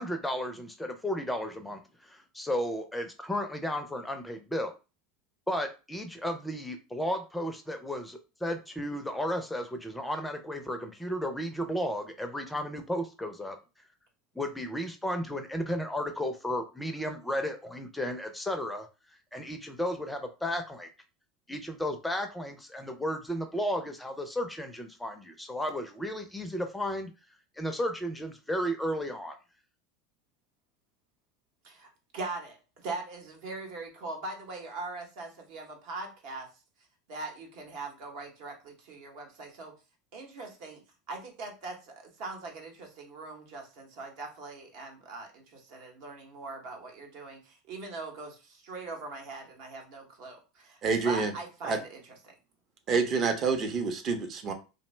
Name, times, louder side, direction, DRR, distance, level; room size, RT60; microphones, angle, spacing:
voice 1, 0.0-4.7 5.5-13.6 14.4-18.9 19.3-20.9 21.5-27.1 27.6-29.4, equal, 5° left, 0.4 m, -33 dB
voice 2, 31.6-36.5 37.1-39.7 40.1-50.8 51.0-52.3, right 3 dB, 65° right, 0.9 m, -41 dB
voice 3, 50.8-51.3 51.6-51.8 52.9-54.5, right 4 dB, 40° right, 0.6 m, -27 dB
2.6 x 2.0 x 3.1 m
supercardioid pair, 105°, 0 cm